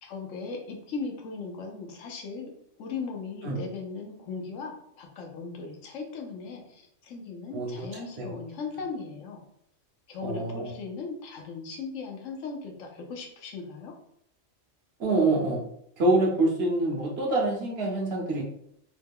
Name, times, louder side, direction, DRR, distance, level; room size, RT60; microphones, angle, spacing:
voice 1, 0.0-2.5 2.8-9.4 10.1-13.9, left 4 dB, 85° left, 2 dB, 1.1 m, -38 dB
voice 2, 7.5-8.3 10.2-10.7 15.0-15.6 16.0-18.4, right 2 dB, 60° right, -1 dB, 1.0 m, -26 dB
3.2 x 2.2 x 3.5 m, 0.71 s
omnidirectional pair, 1.3 m